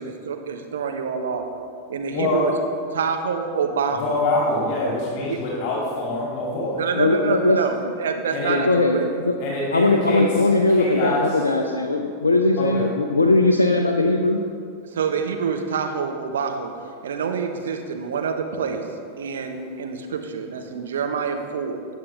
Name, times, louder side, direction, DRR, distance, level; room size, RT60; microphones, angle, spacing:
voice 1, 0.0-1.4 1.9-2.5 2.9-4.2 5.3-5.4 6.8-9.1 14.9-16.7 17.0-18.8 19.2-21.9, right 6 dB, 65° right, 4 dB, 1.1 m, -27 dB
voice 2, 2.1-2.5 4.0-6.9 8.3-8.6 9.4-10.3 10.7-11.4 12.6-12.9, left 2 dB, 45° left, -5 dB, 2.6 m, -25 dB
voice 3, 6.9-7.6 8.4-9.3 9.7-14.4, left 2 dB, 80° left, 3 dB, 0.6 m, -19 dB
15.5 x 9.1 x 3.5 m, 2.3 s
figure-of-eight pair, 90°, 0 cm